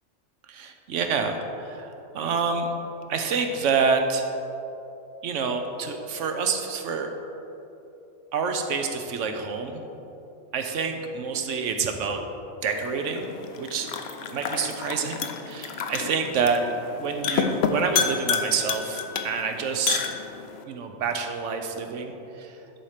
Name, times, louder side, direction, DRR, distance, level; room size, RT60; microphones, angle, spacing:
voice 1, 0.5-2.7 3.1-4.3 5.2-7.1 8.3-9.8 10.5-12.2 12.6-13.3 13.6-13.9 14.3-16.6 16.9-20.0 20.7-22.6, right 5 dB, 75° right, 5 dB, 1.1 m, -27 dB
sound 1, 12.6-20.6, left 6 dB, 65° left, 0.8 m, -30 dB
11.0 x 4.3 x 4.9 m, 2.9 s
omnidirectional pair, 1.3 m